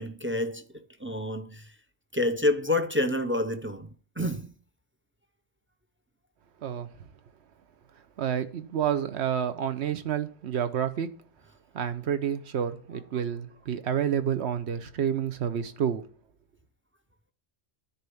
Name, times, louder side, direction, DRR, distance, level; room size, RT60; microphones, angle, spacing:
voice 1, 0.0-1.7 2.1-3.9 4.2-4.6, left 1 dB, 20° right, 0.3 m, -28 dB
voice 2, 8.2-11.1 11.7-16.0, right 8 dB, 80° right, 1.1 m, -29 dB
10.0 x 4.3 x 7.0 m
omnidirectional pair, 1.1 m